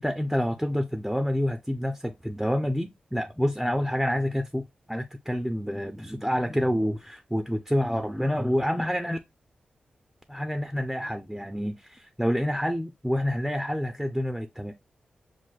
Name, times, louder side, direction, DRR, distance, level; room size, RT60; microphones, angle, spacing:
voice 1, 0.0-9.2 10.3-14.7, equal, 5° right, 0.5 m, -28 dB
6.1 x 2.6 x 2.3 m
wide cardioid pair, 135°, 3 cm